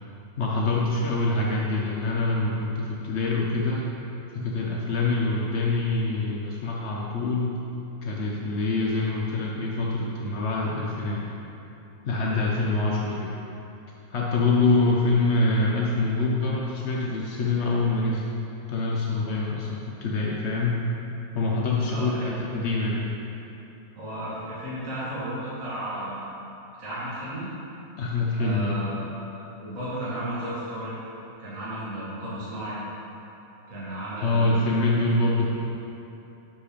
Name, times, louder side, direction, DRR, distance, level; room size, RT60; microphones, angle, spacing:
voice 1, 0.4-3.9 4.3-7.6 8.0-11.2 12.0-13.4 14.1-18.3 18.7-20.8 21.3-23.0 28.0-28.8 34.2-35.5, left 2 dB, 75° left, -3 dB, 0.6 m, -25 dB
voice 2, 21.8-22.4 24.0-26.4 26.8-27.5 28.4-29.1 29.6-30.9 31.4-32.8 33.7-35.0, right 1 dB, 45° right, -9 dB, 1.8 m, -34 dB
6.5 x 5.4 x 5.0 m, 2.9 s
omnidirectional pair, 2.0 m